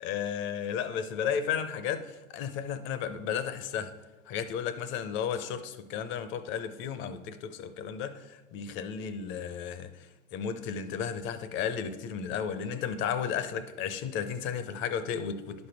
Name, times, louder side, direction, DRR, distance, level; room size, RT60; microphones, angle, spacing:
voice 1, 0.0-3.9 4.3-9.9 10.3-15.7, left 7 dB, 30° left, 0.6 m, -33 dB
11.0 x 5.3 x 4.6 m
hypercardioid pair, 105°, 40 cm